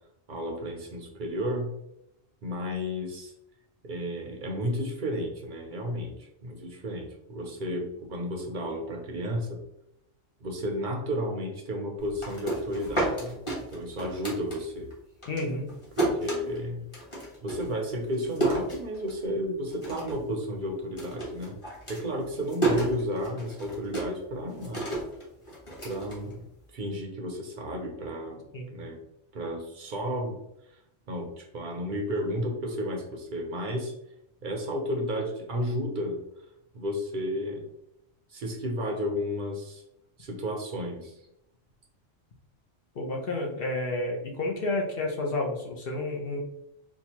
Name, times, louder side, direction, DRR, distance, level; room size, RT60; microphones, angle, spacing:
voice 1, 0.3-1.8 2.4-3.3 3.8-9.6 10.4-14.9 16.0-16.9 17.4-21.6 21.9-24.9 25.8-26.5 26.7-28.4 28.7-29.0 29.3-30.4 31.1-33.9 34.4-36.2 36.7-37.6 38.3-39.8 40.2-41.2, equal, 55° right, 2 dB, 0.6 m, -32 dB
sound 1, 12.0-14.9 15.2-19.4 19.7-20.3 20.5-26.8, right 2 dB, 25° left, 1.1 m, -32 dB
voice 2, 15.3-15.7 28.5-28.7 42.9-46.4, left 2 dB, 55° left, 0 dB, 0.8 m, -30 dB
4.5 x 2.3 x 2.8 m, 0.81 s
omnidirectional pair, 1.3 m